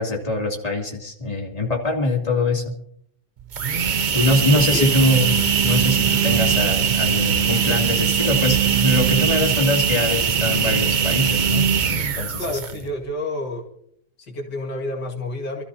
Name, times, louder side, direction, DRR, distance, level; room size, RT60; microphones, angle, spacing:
voice 1, 0.0-2.7 4.1-12.4, left 1 dB, 20° left, -1 dB, 2.8 m, -23 dB
sound 1, 3.4-12.9, right 7 dB, 65° right, 0.4 m, -21 dB
voice 2, 4.5-5.2 12.4-13.7 14.2-15.6, left 1 dB, 80° left, 1 dB, 2.7 m, -29 dB
28.0 x 13.5 x 2.8 m, 0.69 s
omnidirectional pair, 1.7 m